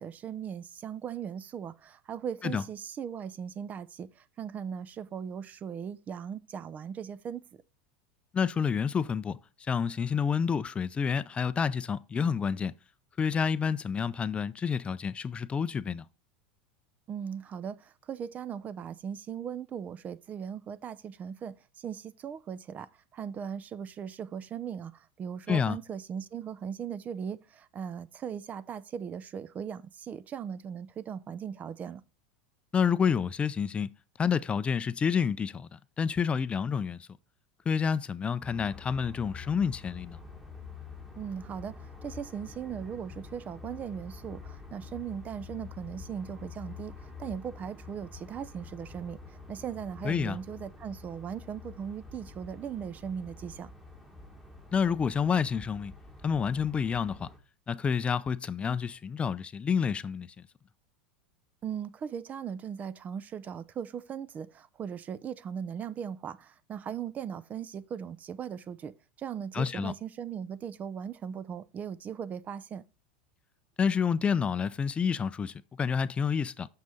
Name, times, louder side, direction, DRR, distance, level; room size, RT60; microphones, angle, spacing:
voice 1, 0.0-7.5 17.1-32.0 41.2-53.7 61.6-72.8, right 8 dB, 30° right, 0.5 m, -38 dB
voice 2, 8.3-9.4 9.7-12.7 13.2-16.0 25.5-25.8 32.7-33.9 34.2-37.1 37.7-40.2 50.0-50.4 54.7-55.9 56.2-57.3 57.7-60.5 69.5-69.9 73.8-76.7, left 6 dB, 20° left, 0.5 m, -29 dB
sound 1, 38.4-57.4, left 4 dB, 5° right, 1.6 m, -47 dB
6.6 x 6.0 x 4.2 m
hypercardioid pair, 100°, 5 cm